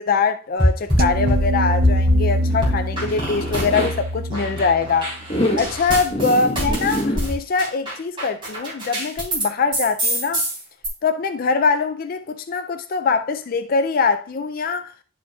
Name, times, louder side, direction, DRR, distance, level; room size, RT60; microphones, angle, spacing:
voice 1, 0.0-5.1 5.6-10.4 11.0-14.9, left 4 dB, 45° left, 0.4 m, -22 dB
sound 1, 0.6-2.2 2.6-4.0 4.3-9.5 9.7-10.9, equal, 25° right, 3.7 m, -23 dB
sound 2, 1.0-6.2, equal, 45° right, 0.4 m, -24 dB
Zipper (clothing), 2.3-3.9 5.2-5.7 6.1-7.2, equal, 30° left, 1.2 m, -25 dB
11.5 x 5.0 x 2.3 m
head